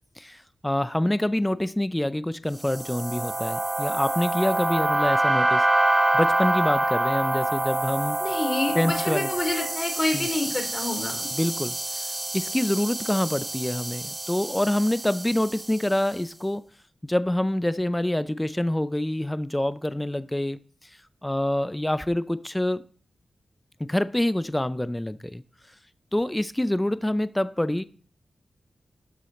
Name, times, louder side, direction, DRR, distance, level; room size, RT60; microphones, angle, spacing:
voice 1, 0.2-5.7 6.1-8.2 8.7-9.3 10.1-10.3 11.3-16.7 17.0-20.6 21.2-22.8 23.8-25.4 26.1-27.8, left 1 dB, 10° left, 0.4 m, -26 dB
sound 1, 2.6-16.0, right 1 dB, 20° right, 1.2 m, -26 dB
voice 2, 8.2-11.3, left 2 dB, 30° left, 3.5 m, -28 dB
12.0 x 7.3 x 4.1 m
wide cardioid pair, 85°, 0 cm